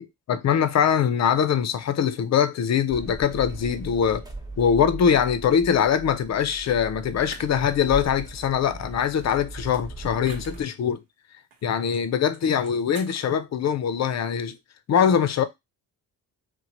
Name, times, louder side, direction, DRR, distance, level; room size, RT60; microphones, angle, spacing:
voice 1, 0.0-4.2 4.6-11.0 11.6-14.6 14.9-15.4, left 8 dB, 40° left, 0.5 m, -22 dB
sound 1, 2.9-10.6, right 2 dB, 10° right, 0.9 m, -38 dB
sound 2, 6.6-6.7 7.3-8.1 8.8-11.0 11.5-12.1 12.3-13.3, right 4 dB, 70° right, 1.0 m, -47 dB
2.9 x 2.1 x 2.9 m
hypercardioid pair, 50°, 42 cm